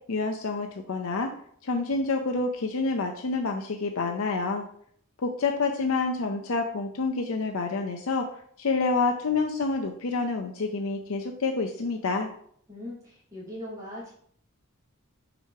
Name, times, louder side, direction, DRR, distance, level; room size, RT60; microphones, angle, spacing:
voice 1, 0.1-1.3 1.6-4.6 5.2-8.3 8.6-12.3, left 3 dB, 75° left, 4 dB, 0.6 m, -28 dB
voice 2, 12.7-14.1, left 1 dB, 15° right, -10 dB, 2.6 m, -40 dB
5.0 x 4.8 x 5.5 m, 0.63 s
head